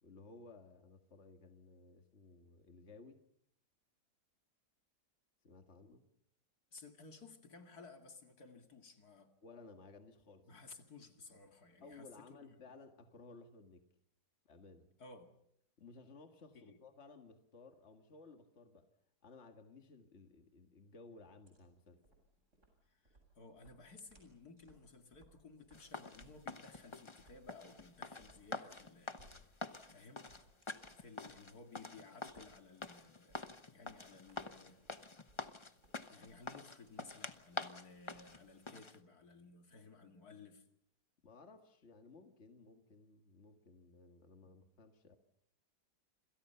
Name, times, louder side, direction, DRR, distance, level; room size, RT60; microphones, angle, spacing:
voice 1, 0.0-3.2 5.4-6.0 9.4-10.5 11.8-13.8 14.5-14.9 15.8-18.9 19.2-22.0 41.2-45.2, left 3 dB, 45° left, 5 dB, 2.1 m, -58 dB
voice 2, 6.7-9.3 10.5-12.6 15.0-15.3 16.5-16.8 22.9-29.6 29.9-30.3 31.0-34.8 36.1-40.6 44.4-44.6, left 4 dB, 70° left, 5 dB, 2.8 m, -57 dB
sound 1, 21.4-38.7, right 1 dB, 45° right, 8.1 m, -68 dB
sound 2, 25.7-39.0, left 3 dB, 20° left, 0.9 m, -47 dB
27.5 x 27.0 x 5.8 m, 0.73 s
omnidirectional pair, 1.7 m